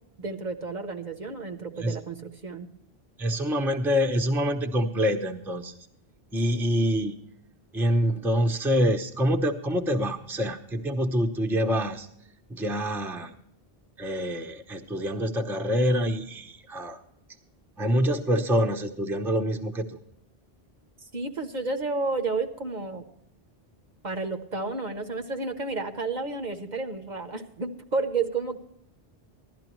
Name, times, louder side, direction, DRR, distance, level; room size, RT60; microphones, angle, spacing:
voice 1, 0.2-2.7 21.1-23.1 24.0-28.6, right 3 dB, 50° right, 6 dB, 0.9 m, -31 dB
voice 2, 3.2-5.7 6.3-7.2 7.7-12.1 12.5-13.3 14.0-17.0 17.8-20.0, equal, ahead, 3 dB, 0.6 m, -26 dB
15.5 x 12.0 x 3.0 m, 0.73 s
omnidirectional pair, 1.0 m